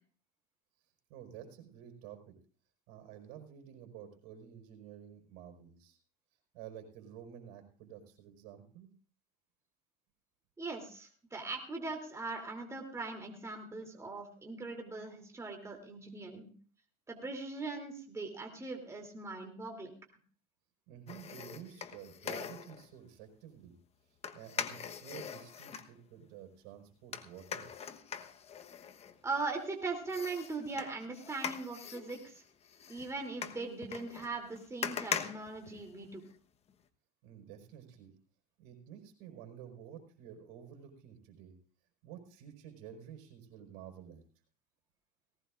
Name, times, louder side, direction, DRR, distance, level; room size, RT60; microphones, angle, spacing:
voice 1, 1.1-2.4 2.9-6.0 6.5-8.9 20.9-23.8 24.1-27.7 37.2-38.1 38.6-41.5 42.0-44.2, right 9 dB, 75° right, 5 dB, 4.8 m, -51 dB
voice 2, 10.6-16.5 17.1-19.9 29.2-32.4 32.9-36.2, right 3 dB, 15° right, 2 dB, 3.0 m, -40 dB
sound 1, 21.1-22.9 24.2-25.9 27.1-29.6 30.1-36.3 36.7-36.8, left 7 dB, 30° left, 1.2 m, -42 dB
19.0 x 17.5 x 2.5 m, 0.42 s
supercardioid pair, 120°, 20 cm